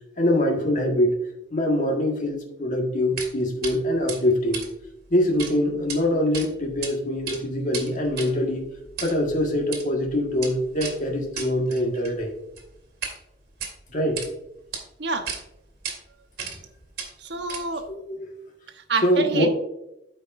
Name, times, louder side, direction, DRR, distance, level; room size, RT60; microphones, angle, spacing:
voice 1, 0.2-1.2 1.5-4.6 5.1-8.6 9.0-12.3 13.9-14.2 17.9-18.3 19.0-19.5, left 1 dB, 45° left, 0 dB, 1.6 m, -24 dB
sound 1, 3.2-3.3 3.6-3.7 4.1-5.5 5.8-6.0 6.3-6.9 7.2-13.2 13.5-14.3 14.7-14.8 15.3-15.4 15.8-16.0 16.4-16.7 17.0-17.9, right 6 dB, 55° right, 2.1 m, -35 dB
voice 2, 17.2-17.9 18.7-19.5, right 3 dB, 80° right, 5 dB, 1.0 m, -27 dB
13.0 x 5.1 x 2.6 m, 0.88 s
head